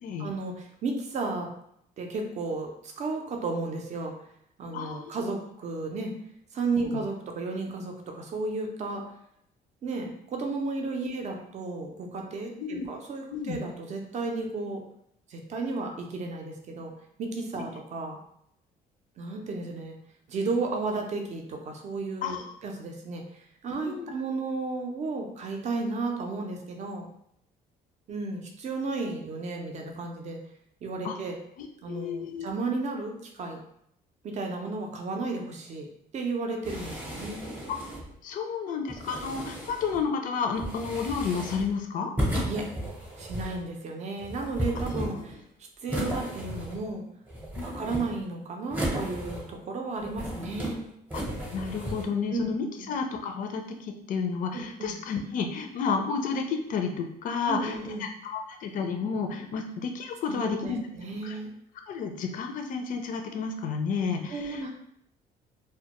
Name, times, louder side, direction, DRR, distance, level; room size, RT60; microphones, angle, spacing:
voice 1, 0.2-1.5 2.0-4.1 4.6-6.1 6.5-9.0 9.8-14.8 15.3-16.9 17.2-18.2 19.2-20.0 20.3-23.2 23.6-27.1 28.1-30.4 30.8-31.4 31.8-33.6 34.2-35.9 36.1-37.5 42.5-42.7 43.2-45.4 45.8-47.0 47.6-50.8 52.3-52.9 54.5-54.9 57.5-58.1 60.3-61.5 64.3-64.7, right 3 dB, 45° right, 2 dB, 0.5 m, -33 dB
voice 2, 4.7-5.1 6.8-7.0 12.6-12.9 13.3-13.6 22.2-22.5 23.8-24.1 31.0-31.2 31.6-32.5 38.2-42.1 47.6-48.0 51.5-60.8 61.2-61.4 61.9-64.7, left 5 dB, 50° left, 4 dB, 0.4 m, -31 dB
sound 1, 36.6-38.1 38.9-40.0 40.6-41.7 42.2-43.6 44.2-45.4 45.9-47.0 47.3-48.2 48.7-49.7 50.0-50.7 51.1-52.0, equal, 10° right, 0.7 m, -34 dB
2.2 x 2.1 x 2.9 m, 0.73 s
cardioid pair, 110°, 17 cm